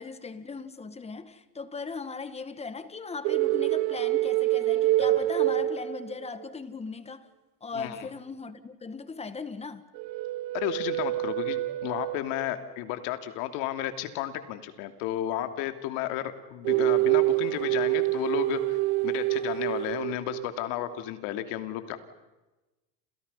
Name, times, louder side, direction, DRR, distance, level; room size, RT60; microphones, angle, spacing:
voice 1, 0.0-7.3 7.6-9.8, left 4 dB, 15° left, 1.7 m, -38 dB
sound 1, 3.2-6.4 10.0-12.6 16.6-20.5, right 17 dB, 50° right, 1.3 m, -26 dB
voice 2, 10.5-18.8 19.0-22.0, left 13 dB, 60° left, 3.0 m, -33 dB
30.0 x 29.0 x 5.7 m
supercardioid pair, 130°, 46 cm